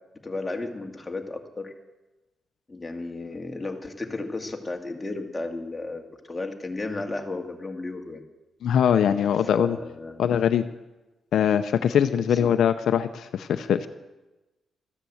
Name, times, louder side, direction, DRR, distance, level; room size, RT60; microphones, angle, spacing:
voice 1, 0.2-1.7 2.7-8.2 9.4-10.3 12.3-12.5, left 2 dB, 15° left, 3 dB, 2.0 m, -34 dB
voice 2, 8.6-9.8 10.2-10.7 11.3-13.9, left 8 dB, 80° left, 10 dB, 0.6 m, -22 dB
14.0 x 9.9 x 7.8 m, 1.1 s
cardioid pair, 100°, 0 cm